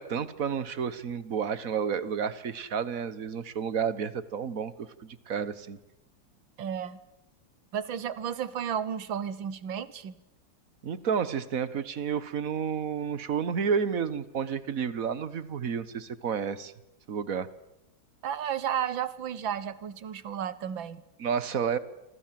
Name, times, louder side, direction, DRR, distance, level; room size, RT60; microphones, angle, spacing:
voice 1, 0.0-4.7 5.0-5.8 10.8-16.7 17.1-17.5 21.2-21.8, right 7 dB, 50° right, 15 dB, 1.6 m, -30 dB
voice 2, 6.6-7.0 7.7-10.2 18.2-21.0, right 9 dB, 85° right, 16 dB, 2.0 m, -33 dB
27.5 x 25.0 x 7.7 m, 0.91 s
omnidirectional pair, 2.1 m